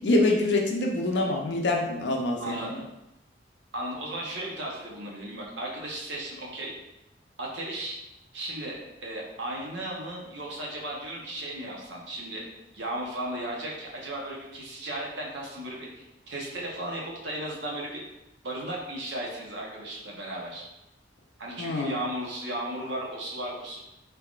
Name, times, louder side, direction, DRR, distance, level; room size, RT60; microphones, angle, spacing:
voice 1, 0.0-2.7 21.6-22.0, left 2 dB, 80° left, 1 dB, 0.6 m, -25 dB
voice 2, 2.4-2.8 3.7-6.7 7.4-8.0 8.3-12.4 12.7-18.0 18.4-20.6 21.4-23.8, right 1 dB, 80° right, -2 dB, 0.9 m, -35 dB
3.7 x 3.4 x 2.4 m, 0.90 s
head